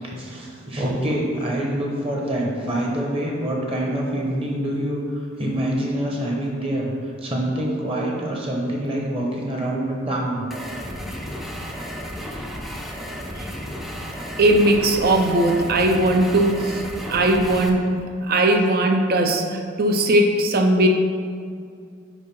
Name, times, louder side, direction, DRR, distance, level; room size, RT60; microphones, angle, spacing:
voice 1, 0.0-6.9 7.2-10.4, right 1 dB, 30° right, -2 dB, 1.1 m, -26 dB
sound 1, 10.5-17.7, equal, ahead, 0.5 m, -33 dB
voice 2, 14.4-16.8 17.1-20.9, right 1 dB, 50° right, 4 dB, 0.6 m, -19 dB
5.1 x 4.8 x 5.6 m, 2.2 s
head